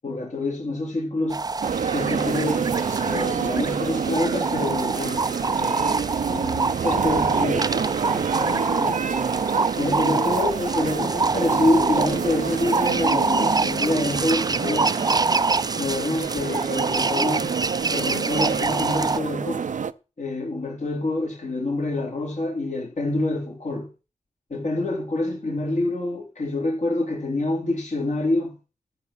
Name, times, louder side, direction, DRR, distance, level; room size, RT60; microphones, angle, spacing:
voice 1, 0.0-1.4 1.9-2.8 3.0-6.0 6.3-9.0 9.8-14.9 15.8-17.6 17.9-19.6 20.2-23.9 24.5-28.5, left 2 dB, 65° left, 3.9 m, -27 dB
sound 1, 1.3-19.2, right 3 dB, 30° right, 0.5 m, -26 dB
sound 2, 1.6-19.9, right 6 dB, 70° right, 0.7 m, -27 dB
13.5 x 7.0 x 5.9 m
cardioid pair, 50°, 14 cm